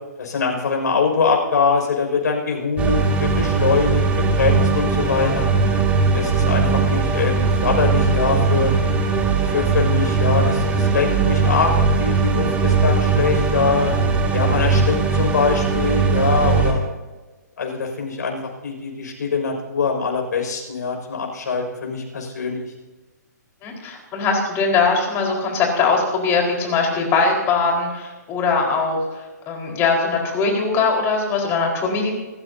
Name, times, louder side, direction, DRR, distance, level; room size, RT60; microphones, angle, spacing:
voice 1, 0.2-5.5 6.1-8.7 9.5-11.7 12.0-13.9 14.3-16.8 17.6-22.7, left 5 dB, 70° left, 1 dB, 6.0 m, -23 dB
sound 1, 2.8-16.7, right 4 dB, 15° right, 2.4 m, -19 dB
voice 2, 23.6-29.0 29.5-32.1, left 4 dB, 25° left, 0 dB, 4.6 m, -21 dB
28.0 x 14.0 x 2.8 m, 1.2 s
hypercardioid pair, 140°, 10 cm